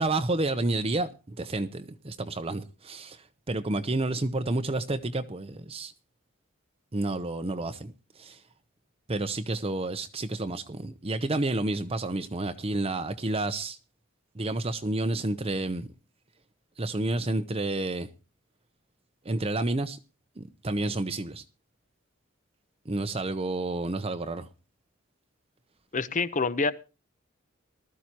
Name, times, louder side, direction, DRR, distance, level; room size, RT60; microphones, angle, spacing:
voice 1, 0.0-5.9 6.9-8.4 9.1-13.8 14.3-15.9 16.8-18.1 19.2-20.0 20.4-21.4 22.8-24.5, right 2 dB, 30° right, 0.8 m, -30 dB
voice 2, 25.9-26.7, left 4 dB, 40° left, 1.0 m, -26 dB
20.0 x 13.5 x 3.0 m
head